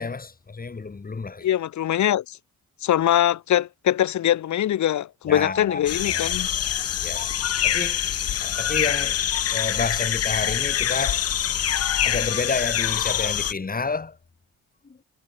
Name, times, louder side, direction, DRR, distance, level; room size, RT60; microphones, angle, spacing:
voice 1, 0.0-1.5 5.3-6.3 7.0-7.3 7.6-8.0 8.4-9.2 9.5-11.3 12.0-14.2 14.8-15.0, left 4 dB, 30° left, 7.3 m, -30 dB
voice 2, 1.4-2.4 2.8-6.5, left 11 dB, 70° left, 3.6 m, -22 dB
sound 1, 5.9-13.5, left 10 dB, 55° left, 1.0 m, -25 dB
cardioid pair, 90°, 30 cm